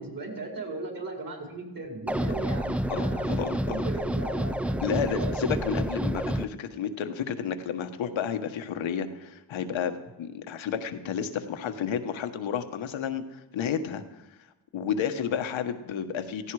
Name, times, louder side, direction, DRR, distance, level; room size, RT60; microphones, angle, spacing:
voice 1, 0.0-5.5, right 2 dB, 45° right, 0 dB, 4.9 m, -37 dB
sound 1, 2.1-6.5, right 1 dB, 5° right, 0.4 m, -29 dB
voice 2, 2.9-3.8 4.8-14.0 14.7-16.5, left 7 dB, 80° left, 8 dB, 1.4 m, -31 dB
17.0 x 16.0 x 4.9 m, 1.0 s
cardioid pair, 90°, 46 cm